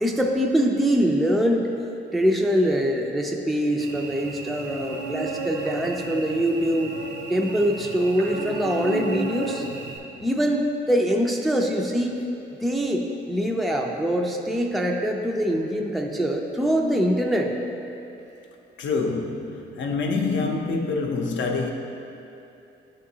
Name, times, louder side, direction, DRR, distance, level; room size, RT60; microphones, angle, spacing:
voice 1, 0.0-1.7 2.1-6.9 7.3-9.7 10.2-12.1 12.6-17.5, equal, ahead, 2 dB, 0.4 m, -23 dB
Cricket / Buzz, 3.8-10.0, right 3 dB, 60° right, 0.7 m, -34 dB
voice 2, 18.8-21.7, left 4 dB, 70° left, 2 dB, 0.7 m, -26 dB
9.3 x 3.7 x 2.7 m, 2.8 s
cardioid pair, 90°, 20 cm